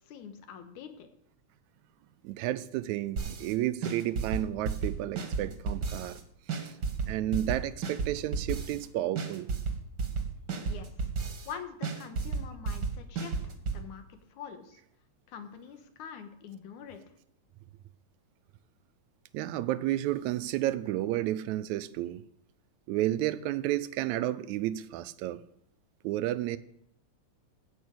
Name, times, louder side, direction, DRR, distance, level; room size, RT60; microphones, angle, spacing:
voice 1, 0.1-1.1 10.6-11.1 11.5-14.8 15.3-17.0, left 7 dB, 85° left, 2.6 m, -45 dB
voice 2, 2.2-6.2 6.5-6.7 7.1-9.5 19.3-22.2 22.9-25.4 26.0-26.6, right 14 dB, 80° right, 1.9 m, -31 dB
sound 1, 3.2-3.5 3.8-6.2 6.5-8.9 9.2-11.5 11.8-13.8, right 5 dB, 45° right, 1.5 m, -33 dB
14.0 x 5.5 x 8.5 m
omnidirectional pair, 3.4 m